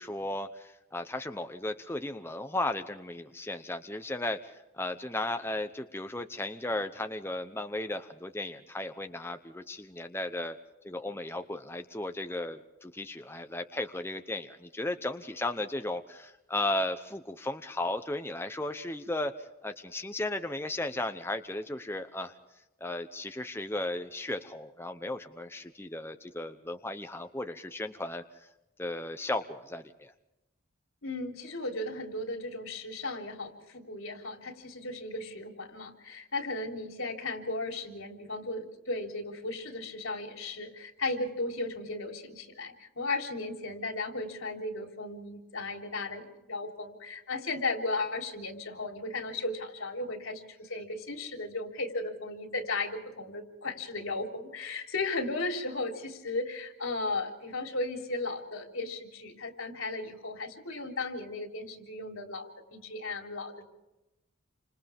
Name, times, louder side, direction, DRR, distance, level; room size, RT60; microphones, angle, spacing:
voice 1, 0.0-10.6 10.8-22.3 22.8-28.2 28.8-30.1, left 2 dB, 10° left, 7 dB, 0.8 m, -35 dB
voice 2, 31.0-63.6, left 2 dB, 90° left, 3 dB, 3.7 m, -35 dB
29.5 x 26.0 x 3.6 m, 0.97 s
head